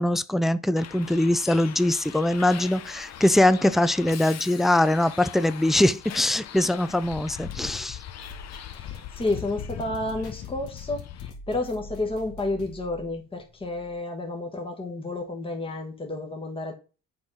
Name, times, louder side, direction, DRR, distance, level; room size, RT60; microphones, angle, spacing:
voice 1, 0.0-8.0, left 1 dB, ahead, 0.4 m, -22 dB
Bus, 0.8-11.3, left 10 dB, 60° left, 0.8 m, -40 dB
sound 1, 8.2-14.0, equal, 75° left, 1.9 m, -46 dB
voice 2, 8.7-16.7, left 2 dB, 20° left, 1.4 m, -31 dB
7.7 x 3.7 x 5.6 m
cardioid pair, 90°, 30 cm